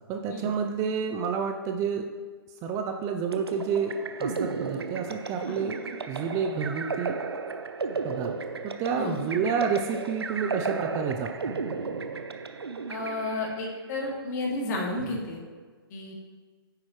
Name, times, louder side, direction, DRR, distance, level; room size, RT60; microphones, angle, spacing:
voice 1, 0.1-2.1 2.6-5.8 6.1-7.2 8.0-8.3 8.6-11.5, right 6 dB, 25° right, 5 dB, 0.6 m, -29 dB
sound 1, 3.3-13.8, right 4 dB, 90° right, 0.8 m, -34 dB
voice 2, 5.3-5.7 9.0-9.2 12.9-15.4 15.9-16.1, left 2 dB, 45° left, -2 dB, 2.8 m, -32 dB
9.6 x 8.3 x 3.2 m, 1.5 s
hypercardioid pair, 140°, 13 cm